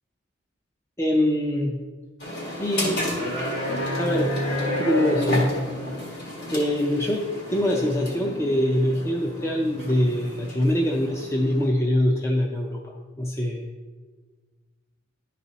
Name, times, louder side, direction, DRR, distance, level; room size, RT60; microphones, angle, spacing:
voice 1, 1.0-1.8 2.6-4.3 4.8-5.5 6.5-13.7, left 1 dB, 15° left, 0 dB, 0.5 m, -24 dB
sound 1, 2.2-11.7, left 1 dB, 55° left, 2.3 m, -30 dB
11.5 x 4.1 x 4.0 m, 1.4 s
head